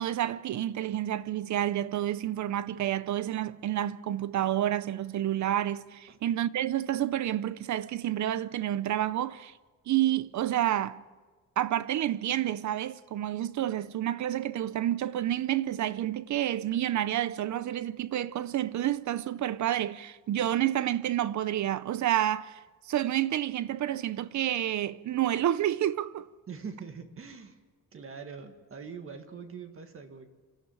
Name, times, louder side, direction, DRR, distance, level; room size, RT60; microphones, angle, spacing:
voice 1, 0.0-9.5 9.9-11.0 11.6-22.6 22.9-26.3, right 12 dB, 60° right, 0.7 m, -29 dB
voice 2, 26.5-27.6 27.9-30.3, right 5 dB, 40° right, 1.8 m, -43 dB
26.5 x 14.0 x 9.0 m
wide cardioid pair, 180°, 33 cm